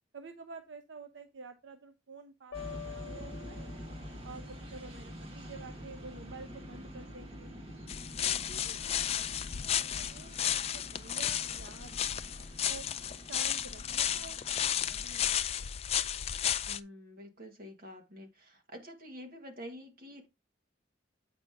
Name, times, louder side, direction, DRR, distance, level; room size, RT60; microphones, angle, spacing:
voice 1, 0.1-3.7 4.2-7.5 8.2-12.9 13.3-15.2, right 4 dB, 75° right, 0.7 m, -50 dB
sound 1, 2.5-4.4, left 8 dB, 75° left, 0.8 m, -46 dB
sound 2, 2.5-15.4, equal, 30° right, 1.6 m, -47 dB
sound 3, 7.9-16.8, left 10 dB, 30° left, 0.3 m, -33 dB
voice 2, 16.6-20.3, equal, 50° right, 1.9 m, -48 dB
8.6 x 5.2 x 3.6 m
head